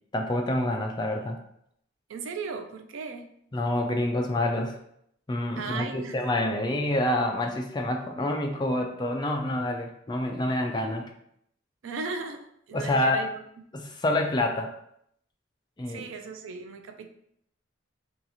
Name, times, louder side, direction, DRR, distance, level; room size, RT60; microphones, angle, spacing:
voice 1, 0.1-1.4 3.5-4.7 5.3-11.1 12.7-13.2 13.7-14.7 15.8-16.1, left 1 dB, 20° left, 2 dB, 0.4 m, -27 dB
voice 2, 2.1-3.3 5.6-6.2 11.8-13.4 15.9-17.1, right 4 dB, 85° right, 6 dB, 0.4 m, -36 dB
2.8 x 2.4 x 4.0 m, 0.72 s
head